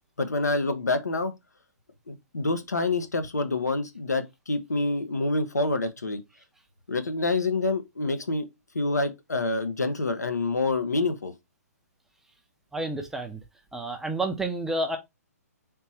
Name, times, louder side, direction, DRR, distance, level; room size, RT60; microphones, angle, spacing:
voice 1, 0.2-1.3 2.1-6.2 6.9-8.4 8.7-11.3, left 2 dB, 85° left, 0.7 m, -27 dB
voice 2, 12.7-13.4 13.7-15.0, right 2 dB, 5° right, 0.5 m, -30 dB
3.4 x 3.0 x 2.8 m
figure-of-eight pair, 130°, 9 cm